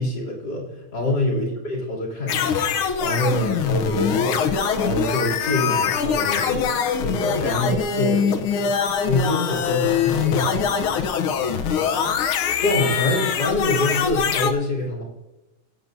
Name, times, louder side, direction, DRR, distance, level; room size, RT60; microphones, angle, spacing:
voice 1, 0.0-4.4 4.8-6.7 7.0-8.8 9.1-11.0 12.6-15.0, left 1 dB, 55° left, -4 dB, 3.8 m, -25 dB
sound 1, 2.3-14.5, left 7 dB, 85° left, 1.7 m, -23 dB
21.0 x 8.5 x 2.7 m, 1.1 s
omnidirectional pair, 2.3 m